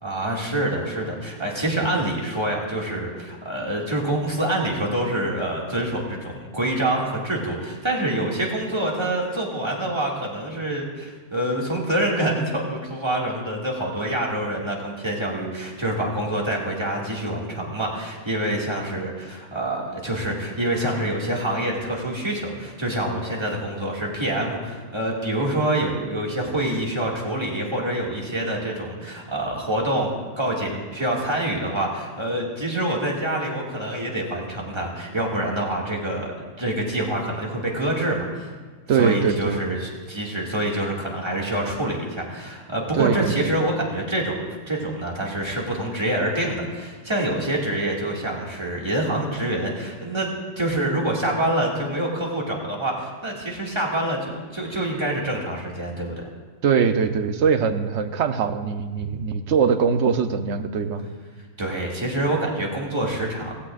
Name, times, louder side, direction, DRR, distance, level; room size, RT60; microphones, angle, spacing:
voice 1, 0.0-30.1 30.4-38.5 39.0-44.4 44.7-50.3 50.6-56.3 59.0-59.1 61.6-63.5, right 1 dB, 20° right, -3 dB, 2.2 m, -26 dB
voice 2, 38.9-39.6 43.0-43.5 56.6-61.1, right 6 dB, 65° right, 9 dB, 1.0 m, -22 dB
17.0 x 16.0 x 2.5 m, 1.4 s
omnidirectional pair, 1.4 m